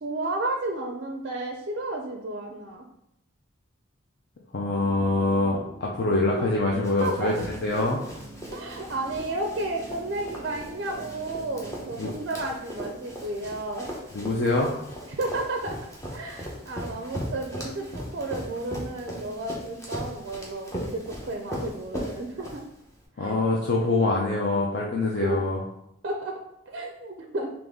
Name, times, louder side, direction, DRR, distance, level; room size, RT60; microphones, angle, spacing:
voice 1, 0.0-2.8 6.4-6.5 7.0-7.3 8.5-13.9 15.1-15.8 16.1-22.7 23.2-23.3 25.2-25.4 26.0-26.4 26.7-27.5, right 2 dB, 50° right, 2 dB, 0.4 m, -32 dB
voice 2, 4.5-8.0 12.0-12.1 14.1-14.7 23.2-25.6, left 2 dB, 55° left, -2 dB, 0.5 m, -24 dB
sound 1, 4.7-12.1, right 1 dB, 5° right, 1.1 m, -46 dB
Run, 6.8-23.0, equal, 15° left, 0.7 m, -38 dB
3.9 x 2.9 x 3.5 m, 0.81 s
head